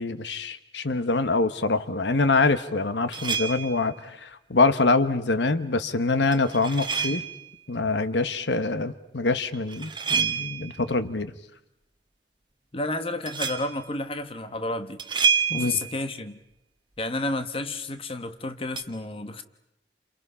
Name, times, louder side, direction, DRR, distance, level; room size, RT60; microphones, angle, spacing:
voice 1, 0.0-7.2 7.7-11.3 15.5-15.7, left 3 dB, 80° left, 12 dB, 1.2 m, -25 dB
sound 1, 3.1-3.9 6.3-7.5 9.5-10.8 13.3-13.8 15.0-16.0 18.8-18.9, right 6 dB, 25° right, 1.6 m, -28 dB
voice 2, 12.7-15.0 15.5-16.4 17.0-19.4, left 2 dB, 30° left, 9 dB, 1.2 m, -31 dB
29.5 x 28.5 x 5.7 m, 0.83 s
head